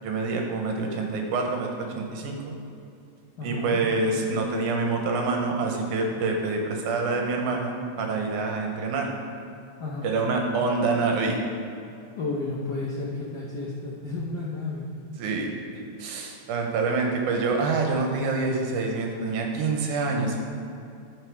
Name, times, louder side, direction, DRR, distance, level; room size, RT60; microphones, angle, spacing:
voice 1, 0.0-2.4 3.4-9.1 10.0-11.4 15.2-15.5 16.0-20.4, right 3 dB, 90° right, 2 dB, 2.6 m, -26 dB
voice 2, 3.4-3.8 9.8-10.1 12.2-14.9, left 3 dB, 70° left, -5 dB, 0.9 m, -32 dB
13.0 x 5.5 x 4.7 m, 2.6 s
omnidirectional pair, 3.4 m